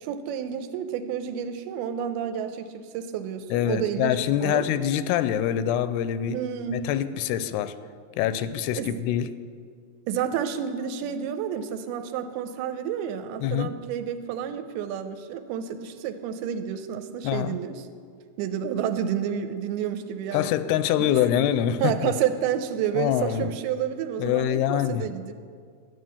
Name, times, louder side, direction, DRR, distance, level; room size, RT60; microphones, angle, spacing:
voice 1, 0.0-4.7 6.3-6.9 8.8-9.0 10.1-17.8 18.4-20.5 21.0-21.2 21.8-25.3, right 8 dB, 85° right, 9 dB, 2.5 m, -30 dB
voice 2, 3.5-6.4 6.7-7.8 8.2-9.3 13.4-13.7 17.2-17.6 20.3-22.1 23.0-23.5 24.2-25.1, left 10 dB, 85° left, 13 dB, 2.6 m, -25 dB
13.0 x 9.5 x 7.0 m, 2.1 s
omnidirectional pair, 4.6 m